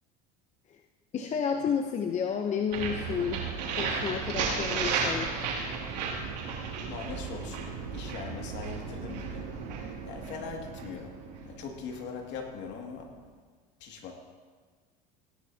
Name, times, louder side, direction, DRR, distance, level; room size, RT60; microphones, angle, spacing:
voice 1, 1.1-3.4 3.7-5.3, left 7 dB, 35° left, 4 dB, 0.8 m, -31 dB
sound 1, 2.7-12.5, right 5 dB, 85° right, 2.5 m, -34 dB
voice 2, 6.9-9.6 10.0-13.2 13.8-14.1, left 5 dB, 60° left, 1 dB, 2.3 m, -41 dB
16.5 x 11.0 x 2.8 m, 1.5 s
supercardioid pair, 95°, 21 cm